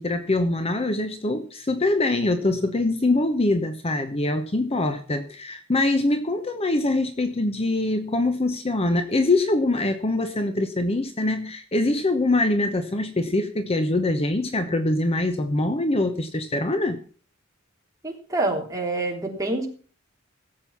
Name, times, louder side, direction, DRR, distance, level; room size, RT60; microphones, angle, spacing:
voice 1, 0.0-17.0, left 2 dB, 30° left, 8 dB, 1.0 m, -24 dB
voice 2, 18.0-19.7, right 2 dB, 15° right, 0 dB, 3.3 m, -26 dB
17.0 x 7.7 x 5.7 m, 0.41 s
head